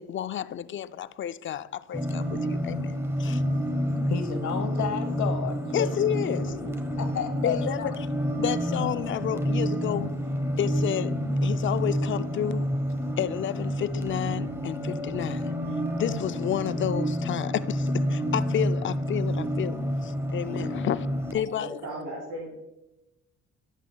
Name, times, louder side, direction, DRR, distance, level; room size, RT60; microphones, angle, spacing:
voice 1, 0.0-3.4 5.7-6.5 7.4-8.0 8.4-10.1 10.6-11.1 11.4-12.7 13.2-15.5 15.9-21.8, left 10 dB, 40° left, 0.4 m, -31 dB
sound 1, 1.9-21.3, equal, 10° right, 1.0 m, -29 dB
voice 2, 4.1-6.7 7.0-7.9 20.5-20.6, left 7 dB, 70° left, 1.2 m, -33 dB
voice 3, 21.4-22.5, right 1 dB, 80° right, 3.1 m, -36 dB
11.0 x 8.0 x 2.3 m
cardioid pair, 90°, 30 cm